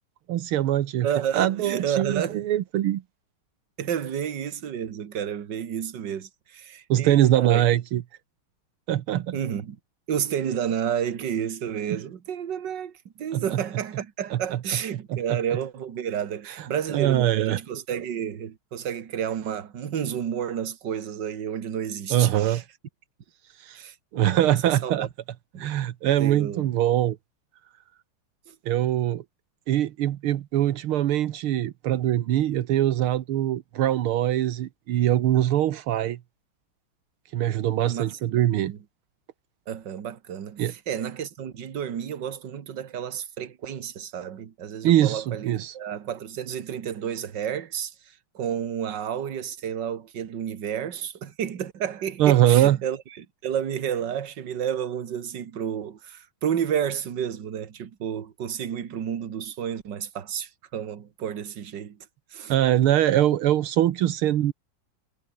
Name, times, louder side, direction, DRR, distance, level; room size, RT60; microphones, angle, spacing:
voice 1, 0.3-1.1 1.3-3.0 6.9-8.0 8.9-9.4 13.3-13.4 14.3-14.6 15.1-15.4 16.5-16.6 16.9-17.6 22.1-22.6 23.6-23.8 24.1-25.1 25.6-27.2 28.7-29.2 29.7-36.2 37.3-38.7 40.6-40.7 44.8-45.7 52.2-52.8 62.5-64.5, right 12 dB, 80° right, 1.9 m, -22 dB
voice 2, 1.0-2.5 3.8-7.6 9.3-9.8 10.1-22.6 23.8-25.1 25.5-25.8 26.2-26.7 28.5-28.6 37.9-38.8 39.7-62.0 62.3-62.5, right 9 dB, 55° right, 2.2 m, -31 dB
omnidirectional pair, 2.3 m